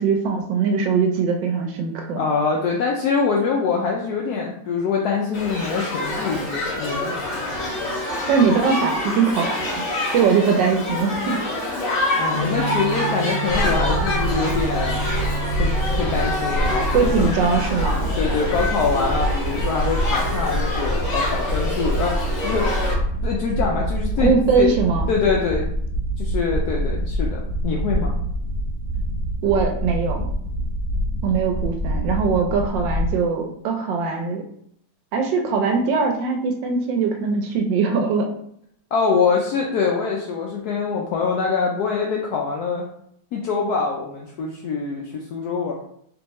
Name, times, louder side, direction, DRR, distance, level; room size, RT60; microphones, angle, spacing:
voice 1, 0.0-2.3 8.3-9.8 10.1-11.4 16.9-18.1 24.2-25.1 29.4-30.3 31.2-34.4 35.1-38.3, right 5 dB, 75° right, 3 dB, 1.2 m, -21 dB
voice 2, 2.2-7.2 12.2-15.0 15.6-17.3 18.2-22.8 23.2-24.7 25.1-25.7 26.2-28.2 38.9-42.8 43.3-45.7, left 5 dB, 75° left, -1 dB, 0.9 m, -24 dB
Shout / Human group actions, 5.3-22.9, left 1 dB, 50° left, 1.2 m, -27 dB
sound 1, 12.3-22.1, right 3 dB, 10° left, 1.2 m, -34 dB
sound 2, 13.5-33.1, equal, 50° right, 1.2 m, -25 dB
3.5 x 3.0 x 3.0 m, 0.68 s
omnidirectional pair, 2.1 m